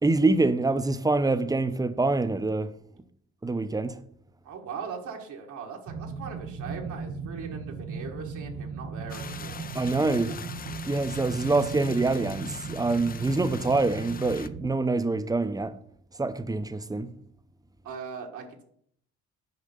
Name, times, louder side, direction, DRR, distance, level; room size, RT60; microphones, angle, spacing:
voice 1, 0.0-2.7 3.4-4.0 9.7-10.4 10.7-15.7 16.2-17.1, right 3 dB, 10° right, 0.6 m, -25 dB
voice 2, 4.4-9.7 17.8-18.6, right 6 dB, 75° right, 1.5 m, -40 dB
sound 1, 5.9-14.7, right 4 dB, 50° right, 1.1 m, -37 dB
sound 2, 9.1-14.5, left 6 dB, 30° left, 0.5 m, -43 dB
6.7 x 5.1 x 6.7 m
cardioid pair, 90°, 30 cm